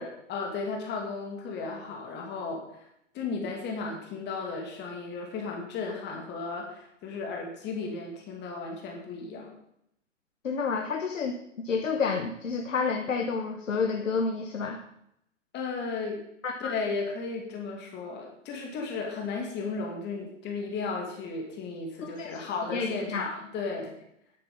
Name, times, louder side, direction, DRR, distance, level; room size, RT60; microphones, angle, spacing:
voice 1, 0.0-2.6 3.1-9.5 15.5-16.2 16.6-23.9, left 4 dB, 25° left, 1 dB, 2.7 m, -34 dB
voice 2, 10.4-14.8 16.4-16.7 22.0-22.4 22.7-23.3, left 5 dB, 85° left, 3 dB, 1.4 m, -30 dB
10.5 x 8.6 x 5.5 m, 0.77 s
hypercardioid pair, 120°, 38 cm